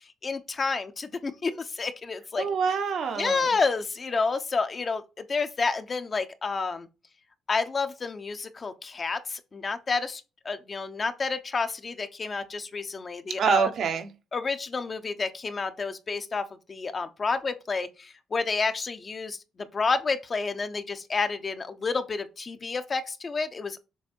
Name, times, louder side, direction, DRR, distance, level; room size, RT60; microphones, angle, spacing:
voice 1, 0.2-2.4 3.2-6.9 7.5-13.7 14.3-19.4 19.7-23.8, left 4 dB, 35° left, 0.9 m, -30 dB
voice 2, 2.4-3.5 13.4-14.1, right 6 dB, 65° right, 1.4 m, -26 dB
7.1 x 3.5 x 4.4 m
cardioid pair, 90°, 0 cm